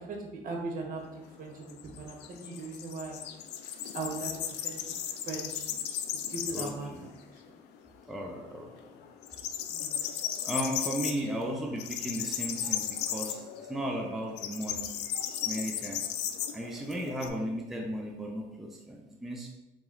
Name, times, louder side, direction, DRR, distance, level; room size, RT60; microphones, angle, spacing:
voice 1, 0.0-3.2 3.9-4.3 4.6-4.8 5.2-6.0 6.3-7.3 9.7-10.0 12.6-12.7 15.4-15.5, right 3 dB, 55° right, 1 dB, 1.0 m, -39 dB
sound 1, 1.0-6.9 7.3-7.4 7.7-8.5 8.8-17.3, left 10 dB, 80° left, 0.4 m, -36 dB
voice 2, 6.5-7.1 8.1-8.9 10.4-14.9 15.4-16.0 16.5-19.5, right 1 dB, ahead, 0 dB, 0.5 m, -35 dB
3.9 x 3.0 x 3.7 m, 1.0 s
cardioid pair, 110°, 17 cm